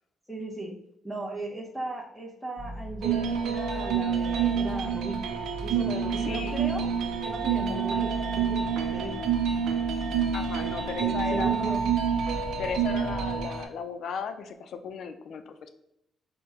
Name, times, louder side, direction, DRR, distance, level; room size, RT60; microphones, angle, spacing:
voice 1, 0.3-0.7 1.0-5.2 5.6-6.9 7.2-9.3 11.0-11.8, right 1 dB, 5° left, -5 dB, 0.7 m, -37 dB
sound 1, 2.6-13.4, equal, 45° right, 1.0 m, -39 dB
sound 2, 3.0-13.6, right 7 dB, 80° right, 0.4 m, -28 dB
voice 2, 6.2-6.6 10.3-11.8 12.6-15.7, left 6 dB, 65° left, 8 dB, 0.4 m, -36 dB
4.2 x 2.1 x 3.5 m, 0.80 s
cardioid pair, 90°, 0 cm